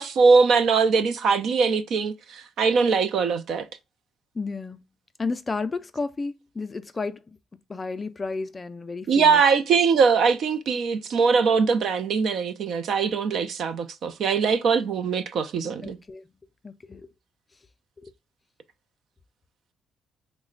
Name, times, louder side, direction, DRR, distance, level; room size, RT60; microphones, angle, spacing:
voice 1, 0.0-3.7 9.1-16.0, right 5 dB, 65° right, 0.4 m, -21 dB
voice 2, 4.3-4.8 5.2-7.2 7.7-9.4 15.8-16.3 16.6-17.1 18.0-18.1, left 4 dB, 25° left, 0.3 m, -32 dB
3.2 x 2.1 x 3.7 m
cardioid pair, 120°, 0 cm